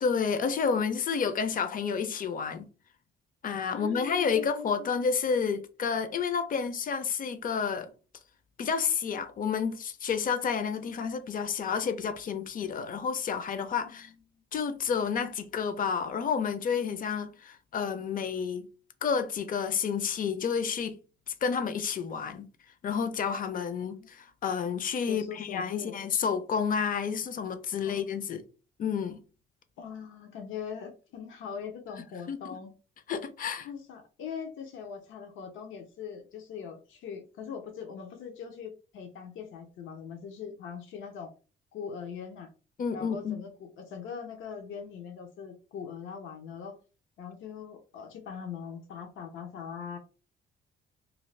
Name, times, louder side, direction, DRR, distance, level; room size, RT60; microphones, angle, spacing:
voice 1, 0.0-2.7 3.4-7.9 8.6-14.1 14.5-18.7 19.0-21.0 21.4-22.5 22.8-28.4 28.8-29.2 32.3-32.6 33.1-33.7 42.8-43.4, left 6 dB, 45° left, 0.5 m, -30 dB
voice 2, 3.7-4.9 13.8-14.4 24.0-24.1 25.1-26.0 27.8-28.2 29.8-32.7 33.6-41.3 41.7-42.5 42.9-46.8 47.2-50.0, left 7 dB, 80° left, 0.7 m, -41 dB
2.6 x 2.4 x 3.2 m
cardioid pair, 90°, 20 cm